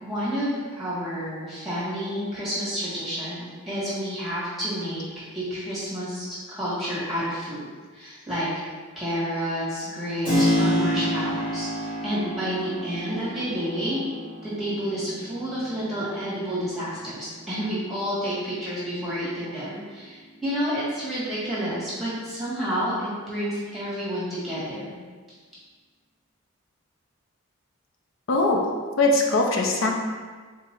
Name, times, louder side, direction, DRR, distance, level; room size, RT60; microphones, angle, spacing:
voice 1, 0.0-5.0 5.3-7.6 7.9-8.5 8.9-14.0 14.4-24.9, equal, ahead, -10 dB, 1.5 m, -30 dB
Keyboard (musical), 10.2-18.8, left 1 dB, 20° left, 1.5 m, -29 dB
voice 2, 28.3-28.6 29.0-29.9, left 2 dB, 65° left, 0 dB, 0.6 m, -21 dB
3.6 x 2.9 x 4.4 m, 1.5 s
head